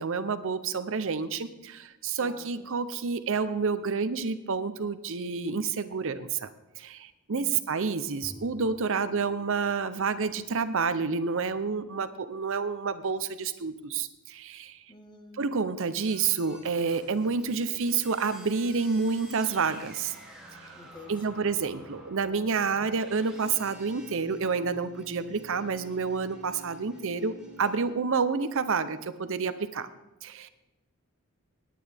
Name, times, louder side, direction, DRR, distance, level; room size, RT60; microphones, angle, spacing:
voice 1, 0.0-6.5 6.8-14.8 15.4-20.2 21.1-29.9 30.2-30.5, right 5 dB, 60° right, 12 dB, 0.7 m, -29 dB
voice 2, 2.2-2.7 7.3-7.6 14.9-15.6 20.7-21.4, left 2 dB, 20° left, 5 dB, 1.4 m, -49 dB
Bowed string instrument, 8.2-12.5, left 3 dB, 40° left, 3.4 m, -53 dB
sound 1, 16.1-27.9, right 3 dB, 5° right, 2.7 m, -49 dB
18.5 x 9.4 x 3.5 m, 1.0 s
head